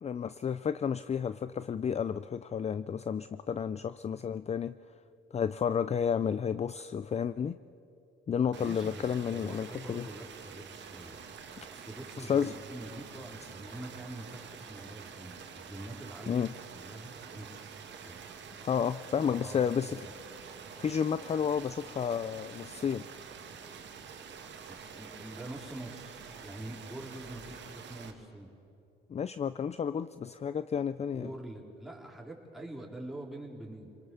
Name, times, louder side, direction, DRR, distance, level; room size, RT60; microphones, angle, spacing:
voice 1, 0.0-4.8 5.3-7.6 8.3-10.1 11.6-11.7 12.2-12.5 16.3-16.5 18.6-20.1 20.7-23.1 29.1-31.3, left 7 dB, 35° left, 14 dB, 0.5 m, -31 dB
voice 2, 8.5-16.4 16.7-18.3 19.2-20.2 24.7-28.5 31.1-33.9, right 1 dB, ahead, -2 dB, 4.1 m, -45 dB
sound 1, 8.5-28.1, right 6 dB, 65° right, 2.2 m, -47 dB
27.0 x 20.0 x 7.1 m, 2.8 s
cardioid pair, 90°, 20 cm